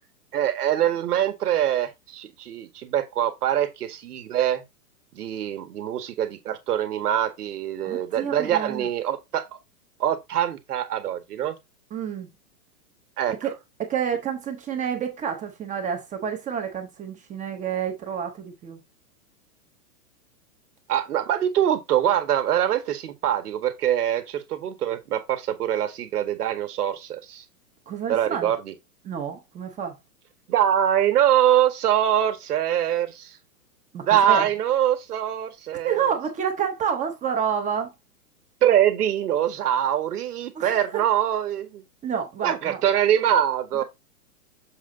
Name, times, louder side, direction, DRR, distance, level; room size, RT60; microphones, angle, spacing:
voice 1, 0.3-4.6 5.1-9.4 10.0-11.6 13.2-13.3 20.9-27.4 28.1-28.7 30.5-33.4 34.0-36.1 38.6-41.8 42.4-43.8, right 10 dB, 70° right, 1.8 m, -23 dB
voice 2, 7.8-8.9 11.9-12.3 13.3-13.5 13.8-18.8 27.9-28.5 29.0-29.9 33.9-34.5 35.8-37.9 40.5-40.8 42.0-42.8, right 7 dB, 15° right, 1.0 m, -29 dB
7.1 x 3.9 x 3.8 m
hypercardioid pair, 145°, 47 cm